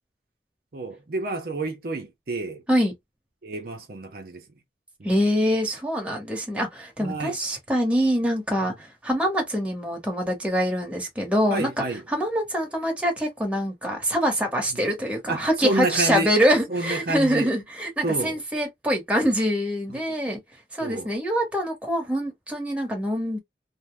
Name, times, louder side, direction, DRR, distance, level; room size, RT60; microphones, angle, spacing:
voice 1, 0.7-2.6 3.4-4.4 5.0-5.1 7.0-7.4 11.5-12.0 15.3-16.3 16.7-17.5 18.0-18.4 19.9-20.0 20.8-21.1, right 2 dB, 55° right, 0.6 m, -29 dB
voice 2, 5.0-20.4 20.7-23.4, equal, 5° right, 1.0 m, -24 dB
2.6 x 2.0 x 3.2 m
head